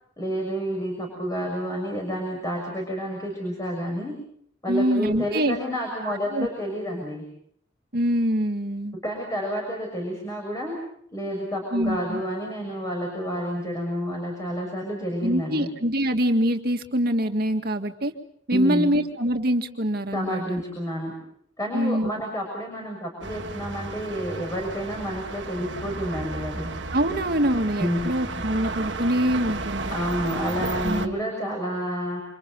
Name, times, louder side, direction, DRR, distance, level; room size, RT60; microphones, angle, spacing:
voice 1, 0.2-4.1 4.6-7.3 9.0-10.8 11.1-15.7 18.5-19.0 20.1-21.1 21.6-26.7 27.8-28.1 29.9-32.2, equal, 20° left, 0 dB, 6.3 m, -29 dB
voice 2, 4.7-5.6 6.0-6.5 7.9-9.0 11.7-12.2 15.2-18.1 18.5-20.6 21.7-22.1 26.9-29.9 30.8-31.2, equal, 55° right, 5 dB, 2.2 m, -24 dB
sound 1, 23.2-31.1, right 3 dB, 75° right, 1.9 m, -33 dB
29.5 x 26.0 x 5.4 m, 0.67 s
head